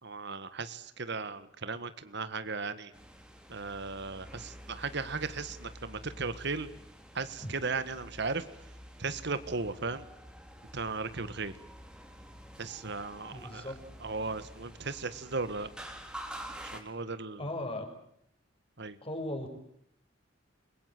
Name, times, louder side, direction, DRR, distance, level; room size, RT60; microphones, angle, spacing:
voice 1, 0.0-2.9 3.5-6.7 7.1-8.4 9.0-10.0 10.7-11.5 12.6-13.7 14.0-15.7 16.7-17.4 18.8-19.0, right 4 dB, 60° right, 13 dB, 1.7 m, -36 dB
sound 1, 2.9-16.8, equal, 5° right, 3.5 m, -48 dB
voice 2, 13.3-13.8 17.4-17.9 19.0-19.5, left 1 dB, 30° left, 5 dB, 6.3 m, -37 dB
29.5 x 22.5 x 7.8 m, 0.72 s
head